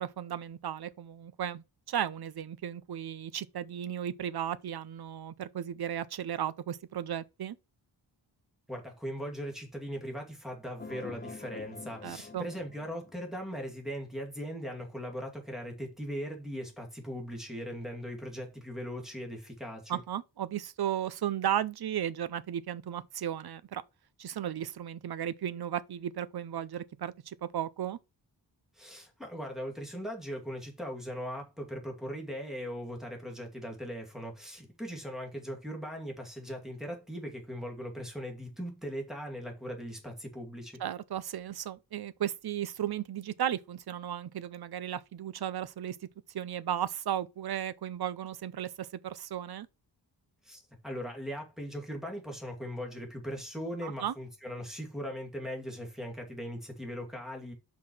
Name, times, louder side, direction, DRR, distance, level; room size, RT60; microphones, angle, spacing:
voice 1, 0.0-1.6 1.9-7.6 12.0-12.4 19.9-23.8 24.2-28.0 40.8-46.0 46.3-49.7 53.8-54.1, right 10 dB, 60° right, 0.6 m, -35 dB
voice 2, 8.7-20.0 28.7-40.8 50.4-57.5, equal, ahead, 2.4 m, -39 dB
sound 1, 10.8-13.6, left 4 dB, 25° left, 0.5 m, -46 dB
5.8 x 4.8 x 5.5 m
wide cardioid pair, 135°, 44 cm